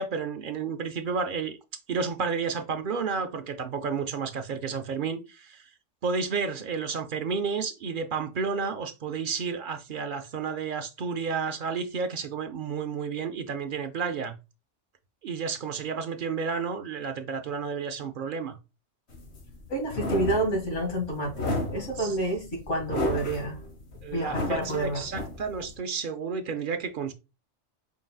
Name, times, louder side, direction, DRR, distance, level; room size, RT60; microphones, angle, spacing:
voice 1, 0.0-1.6 1.9-5.7 6.0-14.4 15.2-18.6 22.0-22.1 24.0-27.1, right 5 dB, 55° right, 0.6 m, -31 dB
sound 1, 19.1-25.7, left 1 dB, 65° left, 1.3 m, -33 dB
voice 2, 19.7-23.6 24.1-25.0, right 1 dB, 85° left, 2.3 m, -29 dB
4.7 x 3.7 x 2.3 m
omnidirectional pair, 1.2 m